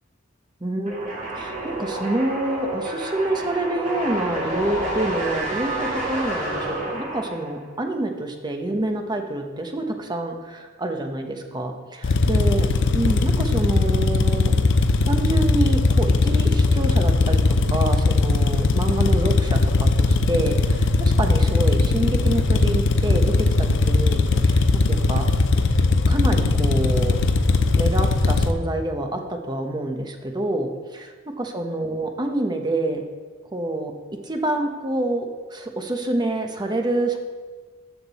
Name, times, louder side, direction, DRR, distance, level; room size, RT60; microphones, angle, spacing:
voice 1, 0.6-14.5 15.0-25.3 26.1-27.2 27.8-33.0 33.5-33.9 34.2-37.2, right 1 dB, 20° right, 4 dB, 0.8 m, -27 dB
sound 1, 0.9-7.6, right 1 dB, 40° right, 2.7 m, -29 dB
sound 2, 12.0-28.5, left 3 dB, 60° left, 0.6 m, -19 dB
14.0 x 5.9 x 4.1 m, 1.4 s
head